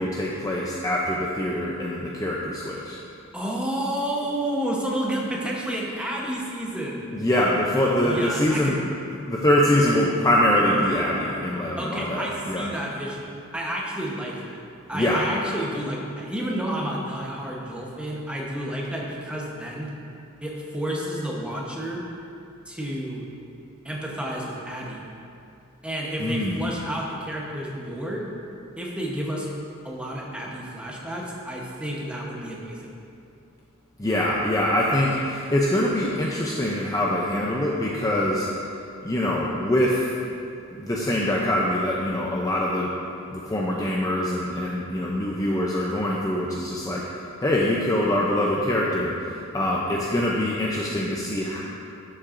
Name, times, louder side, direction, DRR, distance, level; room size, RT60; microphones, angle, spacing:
voice 1, 0.0-3.0 7.1-8.7 9.3-12.7 14.9-15.2 26.2-26.6 34.0-38.5 39.0-40.1 40.7-42.9 43.3-47.0 47.4-49.1 49.5-51.6, left 1 dB, 15° left, -4 dB, 0.5 m, -24 dB
voice 2, 3.3-7.1 8.0-8.8 11.8-14.5 14.9-19.9 20.4-22.0 22.7-23.2 23.8-25.1 25.8-28.2 28.8-29.5 29.8-32.9, right 1 dB, 5° right, -3 dB, 1.0 m, -30 dB
11.5 x 7.2 x 2.6 m, 2.6 s
head